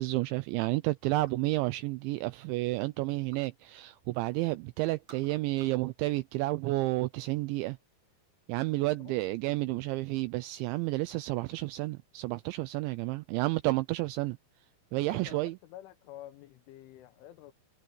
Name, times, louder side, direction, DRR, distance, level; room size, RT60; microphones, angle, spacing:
voice 1, 0.0-7.8 8.5-14.4 14.9-15.6, right 20 dB, 85° right, 2.6 m, -31 dB
sound 1, 1.0-1.6 2.0-3.6 3.9-4.5 4.8-5.9 6.2-7.0, right 5 dB, 35° right, 5.3 m, -60 dB
voice 2, 15.1-17.5, left 13 dB, 80° left, 3.3 m, -49 dB
omnidirectional pair, 5.8 m